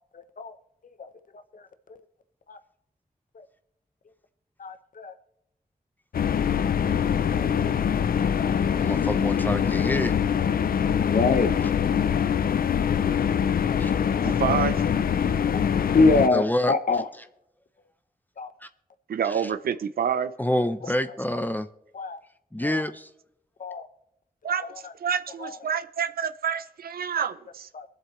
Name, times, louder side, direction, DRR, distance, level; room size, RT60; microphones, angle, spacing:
voice 1, 4.6-5.1 7.3-7.5 8.4-8.6 11.1-11.5 13.7-13.8 14.2-14.3 15.9-17.1 18.4-18.5 21.9-22.2 22.6-22.8 23.6-23.8 27.8-27.9, left 3 dB, 65° left, 10 dB, 0.9 m, -23 dB
sound 1, 6.1-16.3, left 8 dB, 80° left, 0.5 m, -24 dB
voice 2, 8.8-10.1 13.8-13.9 16.3-16.7 20.4-21.7 22.5-23.1, left 1 dB, 10° left, 11 dB, 0.7 m, -27 dB
voice 3, 14.2-14.8 19.1-20.3 24.4-27.7, right 7 dB, 90° right, 12 dB, 0.6 m, -28 dB
22.0 x 7.9 x 3.2 m, 0.83 s
cardioid pair, 45°, 15 cm